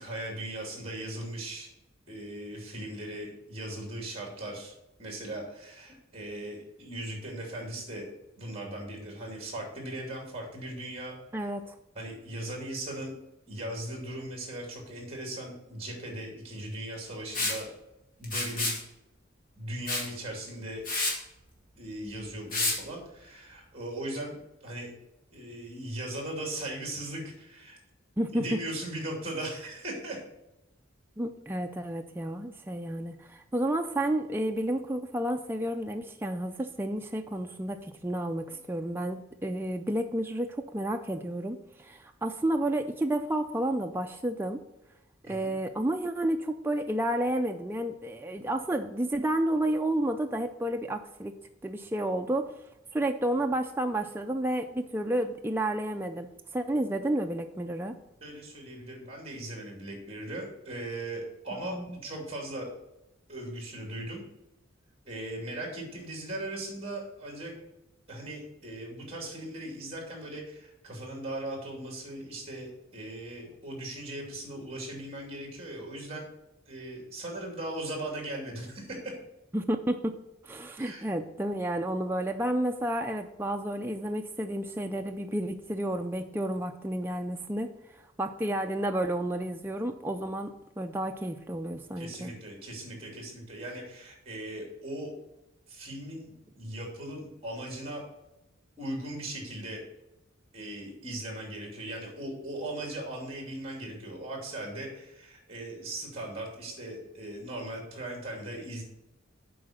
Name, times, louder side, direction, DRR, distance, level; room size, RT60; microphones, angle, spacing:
voice 1, 0.0-1.7 2.1-8.1 8.4-11.5 11.9-13.2 13.5-17.7 18.2-18.8 19.6-20.8 21.8-24.3 24.6-24.9 25.3-27.8 28.3-30.2 45.2-45.5 58.2-62.7 63.3-64.2 65.0-67.5 68.1-76.2 76.7-79.1 80.8-81.1 92.0-95.1 95.7-98.1 98.8-99.8 100.5-108.8, right 1 dB, 30° right, 0 dB, 2.7 m, -38 dB
voice 2, 11.3-11.8 28.2-28.6 31.2-44.6 45.2-51.3 51.6-52.5 52.9-57.9 61.5-62.0 79.5-80.1 80.4-87.7 88.2-90.5 90.8-92.3, right 1 dB, 10° right, 4 dB, 0.3 m, -31 dB
Liquid, 17.3-17.6 18.2-18.8 19.9-20.1 20.5-20.6 20.9-21.2 22.5-22.8, left 3 dB, 40° left, 1.8 m, -29 dB
7.7 x 4.8 x 6.4 m, 0.92 s
head